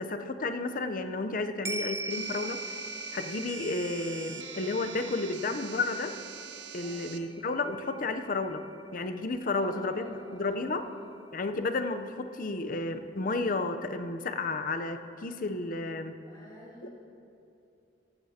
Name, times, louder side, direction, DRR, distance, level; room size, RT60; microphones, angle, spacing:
voice 1, 0.0-2.6 3.1-6.2 6.7-8.6 8.9-10.1 10.3-10.8 11.3-16.1 16.8-16.9, left 3 dB, 45° left, 9 dB, 0.6 m, -32 dB
sound 1, 1.6-10.2 10.6-10.7, right 2 dB, 15° right, 0.3 m, -42 dB
sound 2, 2.1-7.2, right 8 dB, 70° right, 0.8 m, -45 dB
voice 2, 9.5-11.2 16.2-16.9, equal, 20° left, -7 dB, 2.7 m, -50 dB
17.5 x 14.0 x 2.8 m, 2.6 s
head